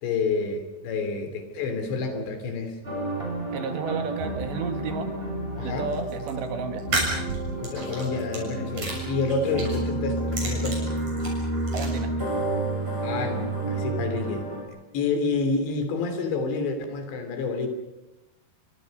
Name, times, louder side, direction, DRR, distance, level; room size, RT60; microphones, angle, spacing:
voice 1, 0.0-2.8 5.6-5.9 7.6-10.9 13.0-14.5 14.9-17.7, left 4 dB, 75° left, 7 dB, 5.3 m, -28 dB
sound 1, 2.8-14.6, right 2 dB, 10° right, 8.0 m, -30 dB
voice 2, 3.5-5.1 5.6-6.8 11.7-12.1, right 5 dB, 75° right, 6 dB, 4.2 m, -32 dB
Playing with a milky slime, 5.9-6.3 6.8-8.4 8.7-9.8 10.2-11.9, right 2 dB, 40° right, 8.2 m, -31 dB
29.5 x 25.0 x 5.4 m, 0.98 s
omnidirectional pair, 5.2 m